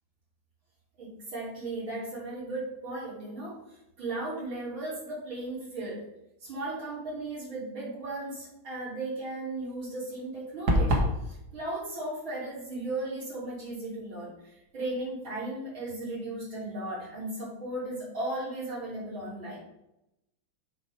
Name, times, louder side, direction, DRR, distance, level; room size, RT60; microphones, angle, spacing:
voice 1, 1.0-3.6 4.0-6.1 6.4-19.6, right 2 dB, 80° right, -8 dB, 3.9 m, -36 dB
sound 1, 10.7-11.2, equal, 55° right, 1.8 m, -23 dB
7.5 x 4.3 x 5.5 m, 0.86 s
omnidirectional pair, 2.1 m